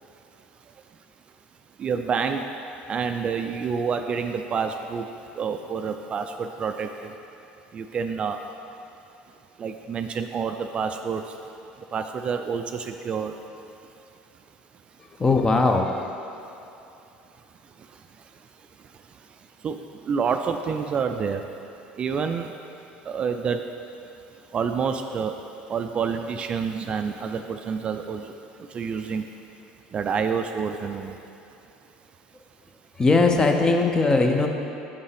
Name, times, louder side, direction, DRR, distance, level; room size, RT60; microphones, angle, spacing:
voice 1, 1.8-2.5 2.9-7.1 7.7-8.4 9.6-11.4 11.8-13.4 17.8-18.0 18.8-18.9 19.6-19.8 20.0-21.5 21.9-22.6 23.1-23.6 24.5-25.4 25.7-29.3 29.9-31.2 34.4-34.5, right 6 dB, 40° right, 7 dB, 0.3 m, -28 dB
voice 2, 15.1-16.1 33.0-34.5, left 3 dB, 25° left, 3 dB, 0.7 m, -20 dB
6.8 x 5.3 x 3.4 m, 2.8 s
hypercardioid pair, 80°, 3 cm